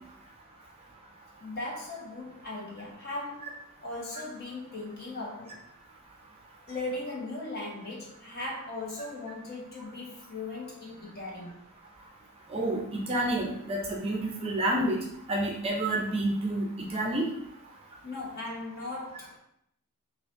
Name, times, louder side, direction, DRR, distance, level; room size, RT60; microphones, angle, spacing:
voice 1, 1.4-5.6 6.7-11.6 18.0-19.3, left 2 dB, 45° left, -4 dB, 1.1 m, -38 dB
voice 2, 12.5-15.0 15.3-17.3, right 1 dB, 25° right, -1 dB, 0.5 m, -29 dB
4.9 x 2.5 x 2.5 m, 0.73 s
head